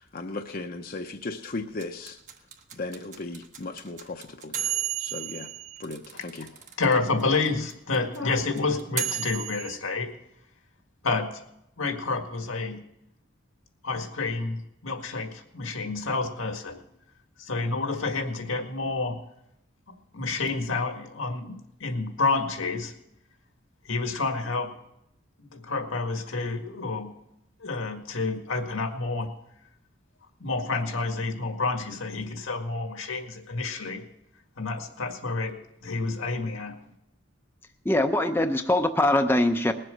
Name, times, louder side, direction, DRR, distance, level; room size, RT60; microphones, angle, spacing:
voice 1, 0.0-2.2 2.7-4.6 5.0-5.5 5.8-6.5, left 3 dB, 45° left, 4 dB, 0.7 m, -36 dB
sound 1, 1.8-6.9 7.2-7.3 7.5-9.8, right 11 dB, 40° right, 1.1 m, -33 dB
voice 2, 6.8-10.1 11.0-11.4 11.8-12.8 13.8-16.8 17.4-19.2 19.9-22.9 23.9-24.7 25.4-27.1 27.6-29.3 30.4-34.1 34.6-36.8, left 3 dB, 90° left, 5 dB, 1.8 m, -29 dB
voice 3, 37.8-39.7, left 1 dB, 10° left, 5 dB, 0.6 m, -22 dB
20.0 x 7.7 x 6.5 m, 0.81 s
head